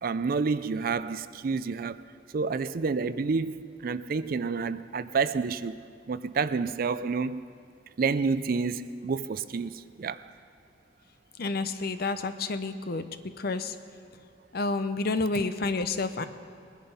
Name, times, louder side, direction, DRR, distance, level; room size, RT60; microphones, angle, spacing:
voice 1, 0.0-2.0 2.3-7.4 8.0-10.3, right 4 dB, 50° right, 0.4 m, -29 dB
voice 2, 11.4-13.0 13.4-13.7 14.5-16.3, left 3 dB, 55° left, 0.7 m, -29 dB
21.0 x 10.5 x 5.5 m
head